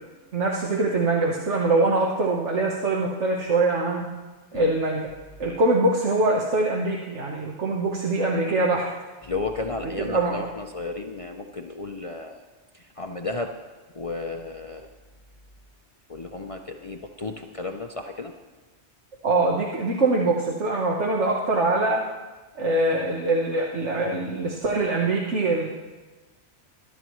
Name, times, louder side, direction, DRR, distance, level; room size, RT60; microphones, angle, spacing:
voice 1, 0.3-4.1 4.5-5.1 5.4-8.9 10.0-10.4 19.2-22.0 22.5-25.7, right 2 dB, 85° right, -2 dB, 1.5 m, -23 dB
voice 2, 9.2-12.4 12.7-13.6 13.9-14.9 16.1-18.3, left 3 dB, 35° left, 3 dB, 0.7 m, -33 dB
22.0 x 12.0 x 3.1 m, 1.3 s
omnidirectional pair, 1.2 m